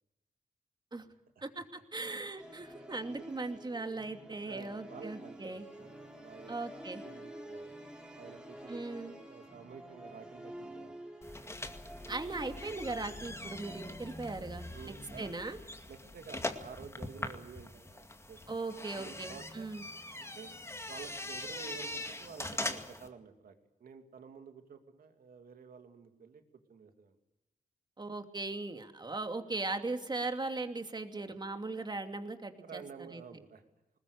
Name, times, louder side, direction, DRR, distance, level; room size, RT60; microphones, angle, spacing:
voice 1, 1.9-5.6 6.5-7.0 8.7-9.1 12.1-15.6 18.5-19.8 28.0-32.8 33.1-33.2, right 3 dB, 30° right, 6 dB, 2.6 m, -39 dB
Musical instrument, 2.4-13.9, right 1 dB, 5° right, 3.8 m, -49 dB
voice 2, 4.5-6.6 7.0-7.7 8.2-11.0 14.7-15.3 15.9-19.7 20.2-20.6 20.9-23.5 23.8-26.4 26.7-27.2 32.6-33.6, right 6 dB, 80° right, 6 dB, 2.7 m, -51 dB
sound 1, 11.2-23.1, left 2 dB, 20° left, 2.2 m, -42 dB
21.0 x 20.0 x 8.4 m, 1.0 s
cardioid pair, 75°, 15 cm